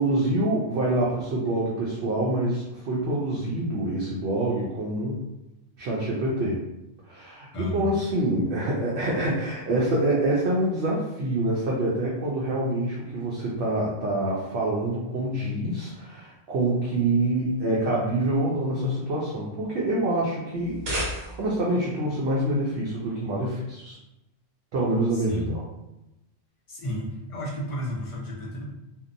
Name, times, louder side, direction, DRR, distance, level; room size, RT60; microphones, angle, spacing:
voice 1, 0.0-5.2 5.8-6.6 7.1-24.0 24.7-25.6, right 1 dB, 65° right, -5 dB, 0.8 m, -26 dB
voice 2, 7.5-8.0 25.1-25.6 26.7-28.7, equal, 50° left, -4 dB, 0.4 m, -32 dB
sound 1, 20.6-21.7, equal, 90° right, 1.2 m, -32 dB
2.7 x 2.1 x 2.5 m, 0.91 s
omnidirectional pair, 1.3 m